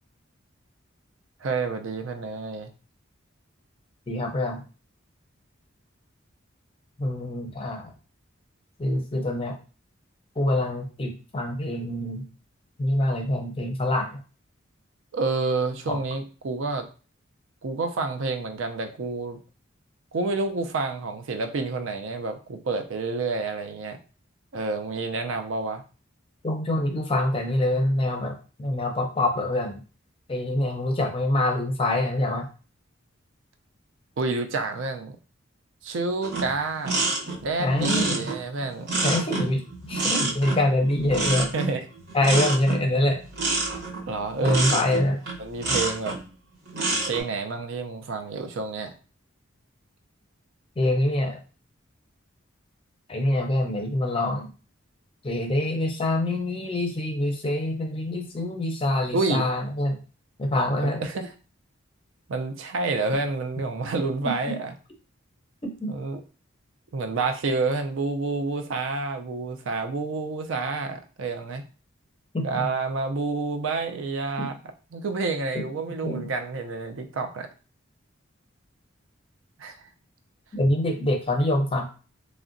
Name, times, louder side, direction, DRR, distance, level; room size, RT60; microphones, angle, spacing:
voice 1, 1.4-2.7 15.1-16.9 17.6-19.4 20.1-24.0 24.5-25.8 34.2-35.2 35.8-37.1 37.4-38.9 41.5-41.8 44.1-44.8 45.4-46.2 47.0-48.9 59.1-59.4 61.0-61.3 62.3-64.7 65.9-66.2 66.9-71.6 72.4-74.6 74.9-77.5 79.6-79.9, right 3 dB, 75° right, 6 dB, 0.4 m, -29 dB
voice 2, 4.1-4.6 7.0-7.9 8.8-9.6 10.4-12.3 12.8-14.2 15.9-16.0 26.4-29.8 30.3-32.5 37.6-38.3 39.0-41.5 42.1-43.2 44.4-45.2 50.8-51.4 53.1-54.5 55.2-60.0 60.4-61.0 64.2-64.6 65.6-66.0 72.3-72.7 74.4-74.5 76.0-76.3 80.5-81.8, left 1 dB, 25° left, 3 dB, 0.5 m, -25 dB
sound 1, 36.2-46.2 46.7-47.2, right 2 dB, 50° right, 0.8 m, -28 dB
3.6 x 2.1 x 2.5 m, 0.35 s
head